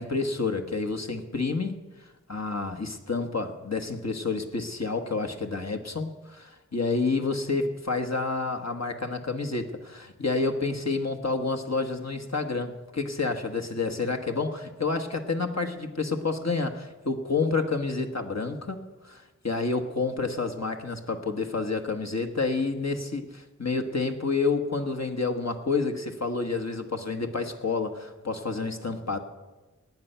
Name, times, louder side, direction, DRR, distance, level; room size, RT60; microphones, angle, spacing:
voice 1, 0.0-6.1 6.7-29.2, left 3 dB, 60° left, 5 dB, 1.4 m, -29 dB
18.0 x 9.1 x 5.7 m, 1.2 s
wide cardioid pair, 45°, 30 cm